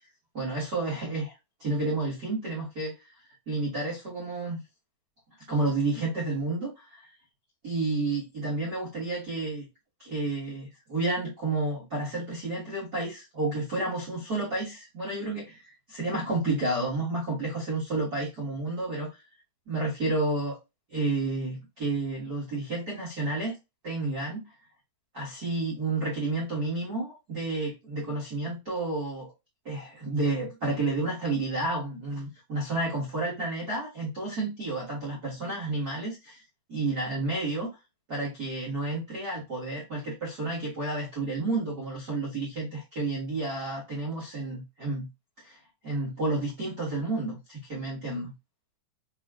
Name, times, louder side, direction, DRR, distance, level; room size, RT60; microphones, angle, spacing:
voice 1, 0.3-1.3 1.6-2.9 3.5-4.6 5.5-7.1 7.6-9.7 10.0-19.2 19.7-20.6 20.9-23.5 23.8-24.4 25.1-29.3 29.6-36.4 36.7-37.7 38.1-45.1 45.4-45.6 45.8-48.3, right 2 dB, 80° right, 0.8 m, -31 dB
7.4 x 2.9 x 2.5 m
omnidirectional pair, 4.9 m